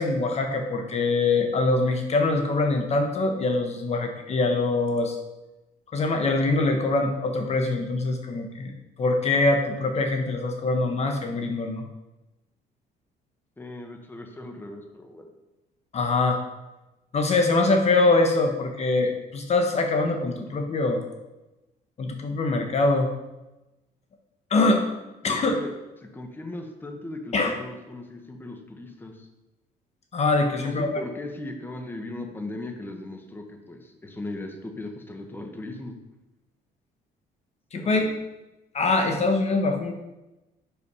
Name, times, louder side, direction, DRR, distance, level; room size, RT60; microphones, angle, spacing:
voice 1, 0.0-5.2 5.9-8.7 9.0-11.8 15.9-16.4 17.1-21.0 22.0-23.1 24.5-24.8 25.2-25.5 27.3-27.5 30.1-31.0 37.7-38.1 38.7-39.9, left 3 dB, 40° left, 4 dB, 1.0 m, -23 dB
voice 2, 13.6-15.3 25.2-25.7 26.0-29.3 30.6-36.0 37.7-38.1, left 2 dB, 10° left, 3 dB, 1.0 m, -38 dB
6.2 x 5.7 x 5.4 m, 1.0 s
cardioid pair, 110°, 17 cm